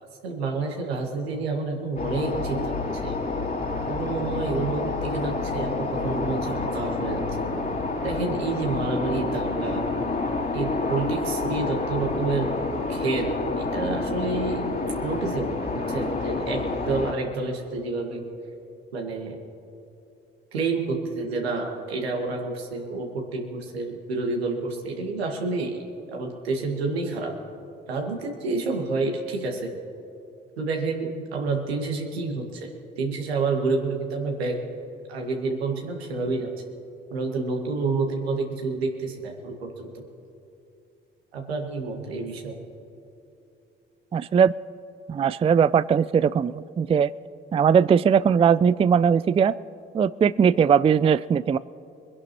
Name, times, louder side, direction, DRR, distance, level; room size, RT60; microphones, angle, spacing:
voice 1, 0.2-3.2 3.9-7.4 8.0-9.9 10.5-12.6 12.9-15.6 15.9-18.2 18.9-19.4 20.5-25.8 26.1-27.3 27.9-29.7 30.6-32.7 33.0-34.6 35.1-36.6 37.1-39.9 41.3-42.6, right 3 dB, 80° right, 2 dB, 1.9 m, -29 dB
sound 1, 2.0-17.1, left 3 dB, 30° left, 2.8 m, -28 dB
voice 2, 44.1-44.5 45.1-47.1 47.5-49.5 49.9-51.6, right 7 dB, 20° right, 17 dB, 0.4 m, -19 dB
25.5 x 11.0 x 3.1 m, 2.8 s
figure-of-eight pair, 40°, 31 cm